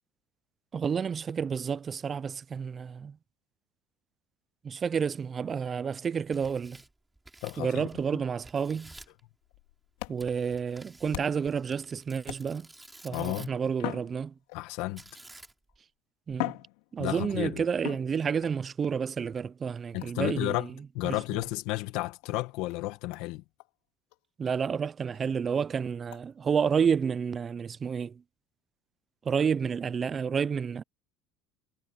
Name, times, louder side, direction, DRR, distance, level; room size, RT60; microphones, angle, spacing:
voice 1, 0.7-3.2 4.6-6.8 7.6-8.9 10.1-12.7 13.0-14.3 16.3-16.6 16.9-20.7 21.0-21.2 24.4-28.2 29.2-30.8, right 6 dB, 25° right, 0.4 m, -30 dB
Tearing, 6.1-8.1 8.4-9.2 10.2-13.7 15.0-15.8, right 2 dB, 5° right, 6.7 m, -52 dB
voice 2, 7.4-7.9 13.1-13.5 14.5-15.0 17.0-17.6 19.9-20.7 20.9-23.4, left 19 dB, 70° left, 1.7 m, -32 dB
sound 1, 9.4-11.6 12.2-12.8 13.7-14.8 15.7-15.8 16.3-17.4 17.8-18.6 20.0-20.3 21.4-21.6 22.2-22.3 22.7-22.8 23.1-23.3 23.6-23.7 24.1-24.2 24.6-24.7 25.1-25.2 26.1-26.2, left 22 dB, 90° left, 3.4 m, -40 dB
cardioid pair, 145°, 0 cm